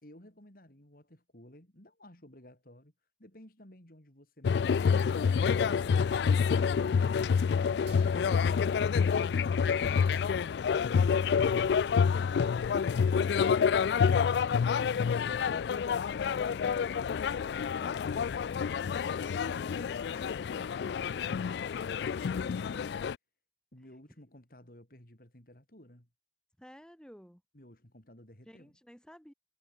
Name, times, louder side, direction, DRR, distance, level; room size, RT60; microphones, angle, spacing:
voice 1, 0.0-2.9 3.2-5.0 23.7-26.1 27.5-28.7, left 1 dB, 55° left, 4.4 m, -55 dB
sound 1, 4.4-23.2, left 6 dB, 70° left, 0.3 m, -28 dB
sound 2, 7.9-8.7 9.8-9.9 10.1-10.7, right 11 dB, 75° right, 1.9 m, -59 dB
voice 2, 26.6-27.4 28.5-29.3, equal, 5° left, 4.7 m, -55 dB
head